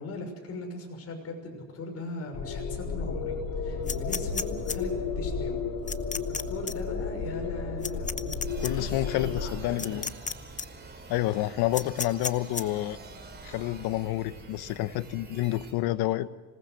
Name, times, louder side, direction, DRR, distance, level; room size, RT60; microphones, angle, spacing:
voice 1, 0.0-5.6 6.1-8.4 8.8-10.0, left 2 dB, 40° left, 3 dB, 6.2 m, -40 dB
sound 1, 2.3-9.6, left 5 dB, 60° left, 5.3 m, -33 dB
sound 2, 3.9-4.8 5.9-6.4 6.7-6.8 7.8-8.7 9.8-10.3 10.6-10.7 11.7-12.6, left 5 dB, 20° left, 1.0 m, -32 dB
sound 3, 8.5-15.7, right 3 dB, 25° right, 4.9 m, -46 dB
voice 2, 8.6-10.1 11.1-13.0 13.4-16.3, left 15 dB, 75° left, 14 dB, 1.1 m, -29 dB
26.5 x 19.0 x 6.6 m, 1.4 s
cardioid pair, 120°, 38 cm